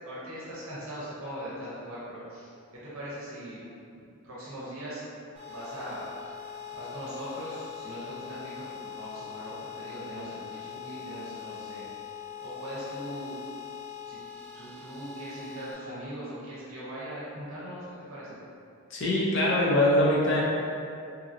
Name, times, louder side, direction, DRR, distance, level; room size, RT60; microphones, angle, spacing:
voice 1, 0.0-3.6 3.9-5.0 5.5-6.1 6.7-11.9 12.4-13.3 14.1-14.2 14.5-18.4, equal, 65° right, -9 dB, 0.7 m, -40 dB
sound 1, 5.3-15.7, left 8 dB, 30° right, 0.8 m, -42 dB
voice 2, 18.9-20.4, left 1 dB, 55° left, -5 dB, 0.5 m, -23 dB
2.8 x 2.6 x 2.5 m, 2.5 s
head